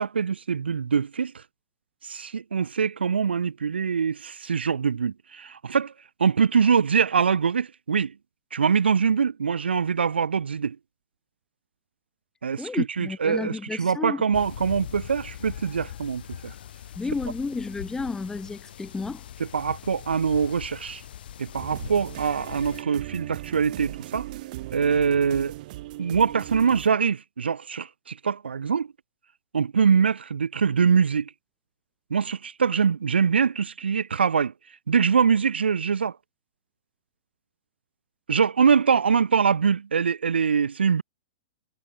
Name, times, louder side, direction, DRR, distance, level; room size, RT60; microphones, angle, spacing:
voice 1, 0.0-1.4 2.0-5.9 6.2-8.1 8.5-10.8 12.4-16.5 19.4-21.0 21.4-24.3 24.7-25.5 26.0-28.9 29.5-31.3 32.1-34.5 34.9-36.2 38.3-41.0, right 6 dB, 80° right, 0.5 m, -23 dB
voice 2, 12.6-14.2 17.0-19.2, left 4 dB, 10° left, 1.1 m, -31 dB
sound 1, 14.3-22.8, left 10 dB, 60° left, 1.3 m, -41 dB
sound 2, 21.5-26.9, right 17 dB, 50° right, 1.1 m, -38 dB
figure-of-eight pair, 105°, 6 cm